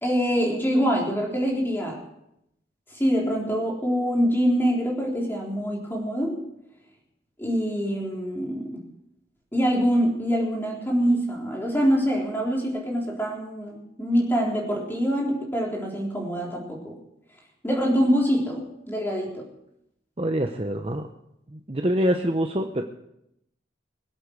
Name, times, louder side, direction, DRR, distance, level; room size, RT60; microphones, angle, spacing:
voice 1, 0.0-2.0 2.9-6.4 7.4-8.8 9.5-16.9 17.6-19.5, equal, 10° left, -2 dB, 3.7 m, -25 dB
voice 2, 20.2-21.1 21.5-22.8, equal, 30° right, 4 dB, 0.8 m, -25 dB
22.5 x 8.3 x 6.5 m, 0.81 s
head